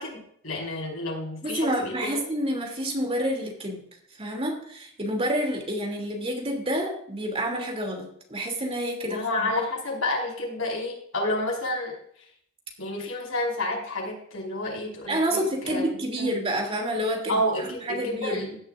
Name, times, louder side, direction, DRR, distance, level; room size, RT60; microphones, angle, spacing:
voice 1, 0.0-2.2 9.0-12.2 12.8-15.9 16.2-16.3 17.3-18.6, left 1 dB, 80° left, -1 dB, 5.0 m, -30 dB
voice 2, 1.4-3.8 4.2-9.5 15.1-18.5, equal, 30° right, 1 dB, 2.9 m, -29 dB
16.0 x 11.0 x 2.6 m, 0.64 s
head